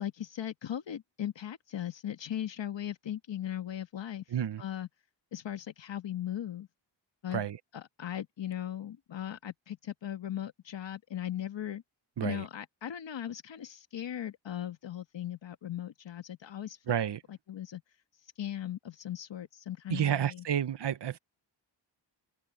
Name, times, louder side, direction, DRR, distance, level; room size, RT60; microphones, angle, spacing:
voice 1, 0.0-4.2 4.6-4.9 5.3-6.7 7.2-7.5 7.7-11.8 12.2-16.8 17.3-17.8 18.4-20.4, left 11 dB, 75° left, 1.6 m, -38 dB
voice 2, 4.3-4.6 7.3-7.6 12.2-12.4 16.9-17.2 19.9-21.2, right 10 dB, 65° right, 1.0 m, -30 dB
open air
wide cardioid pair, 135°, 45 cm